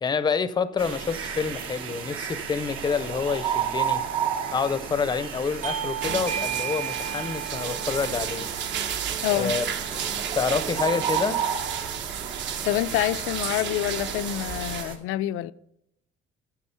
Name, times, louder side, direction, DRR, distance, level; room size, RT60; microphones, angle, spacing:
voice 1, 0.0-4.0 4.5-8.9 9.3-9.6 10.3-11.4, left 5 dB, 20° left, 0.6 m, -28 dB
sound 1, 0.8-15.0, right 8 dB, 75° right, 2.1 m, -33 dB
Bell / Doorbell, 5.6-10.7, right 9 dB, 35° right, 1.0 m, -35 dB
sound 2, 6.0-14.8, right 8 dB, 60° right, 1.2 m, -32 dB
voice 2, 9.2-9.6 12.6-15.5, left 14 dB, 80° left, 0.5 m, -27 dB
14.0 x 7.2 x 5.7 m
cardioid pair, 175°, 21 cm